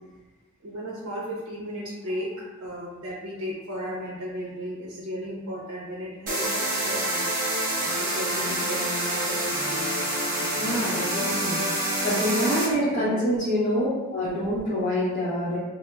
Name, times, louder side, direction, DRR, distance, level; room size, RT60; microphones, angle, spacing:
voice 1, 0.6-2.3 2.6-7.3 8.0-9.9 12.7-13.5, equal, 75° right, -4 dB, 0.6 m, -35 dB
sound 1, 6.3-12.7, right 1 dB, 40° right, 0.7 m, -27 dB
voice 2, 10.4-15.6, equal, 35° left, -10 dB, 0.7 m, -26 dB
4.9 x 2.0 x 2.2 m, 1.2 s
head